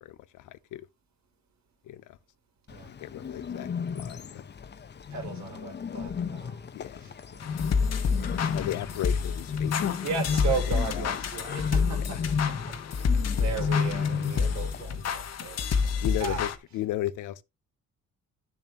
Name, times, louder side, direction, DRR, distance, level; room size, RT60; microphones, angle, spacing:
voice 1, 0.0-0.9 1.8-2.2 3.0-4.4 6.7-7.1 8.5-10.0 16.0-17.4, left 14 dB, 85° left, 0.7 m, -35 dB
Bird, 2.7-14.8, left 6 dB, 35° left, 0.8 m, -33 dB
voice 2, 5.1-6.6 7.0-7.6 8.5-8.7 10.0-16.4, right 6 dB, 65° right, 3.0 m, -36 dB
sound 1, 7.4-16.6, left 5 dB, 55° left, 1.3 m, -29 dB
10.5 x 7.1 x 2.9 m
cardioid pair, 90°, 30 cm